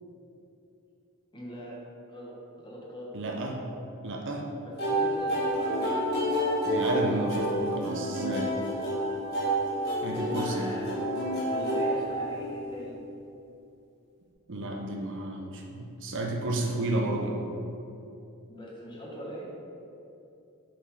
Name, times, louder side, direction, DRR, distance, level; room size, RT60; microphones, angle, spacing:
voice 1, 1.3-1.8 2.1-3.2 4.6-5.9 10.1-10.9 11.5-13.0 18.5-19.6, equal, 20° left, -5 dB, 1.2 m, -41 dB
voice 2, 3.1-3.6 4.0-4.5 6.6-8.5 10.0-10.7 14.5-17.4, right 2 dB, 55° right, 1 dB, 0.7 m, -32 dB
sound 1, 4.8-12.7, equal, 45° left, 1.5 m, -29 dB
5.0 x 4.4 x 5.6 m, 2.8 s
head